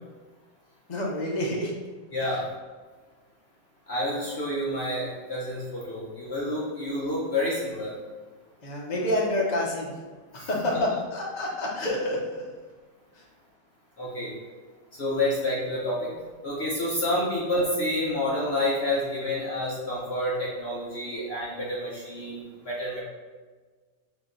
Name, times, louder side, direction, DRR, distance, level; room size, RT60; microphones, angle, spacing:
voice 1, 0.9-1.7 2.2-2.4 8.6-9.9 10.3-12.5 13.1-13.2 17.1-17.2, left 1 dB, 80° left, -3 dB, 0.3 m, -28 dB
voice 2, 2.1-2.4 3.9-7.9 10.4-10.8 14.0-14.3 15.0-16.1 16.4-23.0, left 1 dB, 50° left, -5 dB, 0.8 m, -29 dB
4.9 x 2.8 x 3.7 m, 1.4 s
omnidirectional pair, 1.9 m